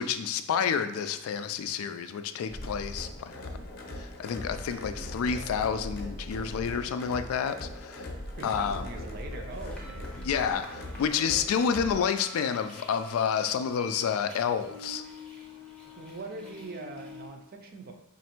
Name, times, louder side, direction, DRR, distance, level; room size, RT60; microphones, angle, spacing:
voice 1, 0.0-8.1 8.4-8.9 10.2-15.0, left 7 dB, 85° left, 10 dB, 0.3 m, -29 dB
sound 1, 2.5-11.9, left 1 dB, 45° left, 0.6 m, -40 dB
voice 2, 8.4-10.1 16.0-17.9, right 2 dB, 45° right, 3 dB, 0.5 m, -42 dB
sound 2, 9.2-14.8, left 3 dB, 80° right, 1.1 m, -52 dB
sound 3, 9.5-17.3, left 2 dB, 5° left, 0.6 m, -49 dB
3.3 x 2.6 x 4.3 m, 0.89 s
head